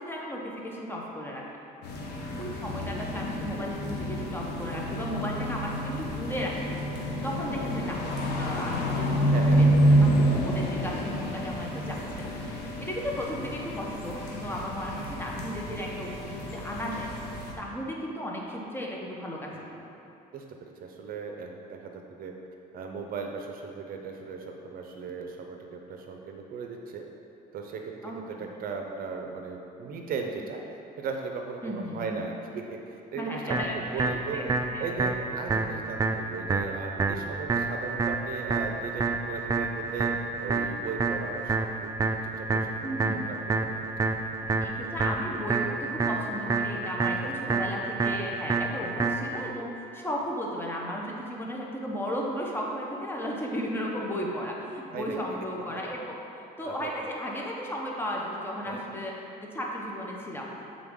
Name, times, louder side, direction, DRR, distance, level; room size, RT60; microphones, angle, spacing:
voice 1, 0.0-1.4 2.4-6.8 7.2-8.0 8.3-9.7 10.0-10.1 10.4-12.3 12.8-17.1 17.6-19.9 28.0-28.5 31.6-32.2 33.2-34.1 34.3-34.9 42.8-43.2 44.4-56.2 56.6-59.1 59.4-60.5, equal, 15° left, -2 dB, 0.9 m, -35 dB
sound 1, 1.8-17.5, equal, 75° left, 0.8 m, -28 dB
voice 2, 9.3-9.8 20.3-22.3 22.7-27.0 27.5-34.4 34.8-42.9 43.1-43.9 44.2-44.3 47.1-47.5 54.9-55.2 56.6-56.9 58.6-58.8, right 5 dB, 60° right, 3 dB, 0.6 m, -38 dB
sound 2, 33.5-49.5, right 4 dB, 20° right, 0.3 m, -29 dB
7.7 x 3.7 x 3.7 m, 2.8 s
cardioid pair, 110°, 17 cm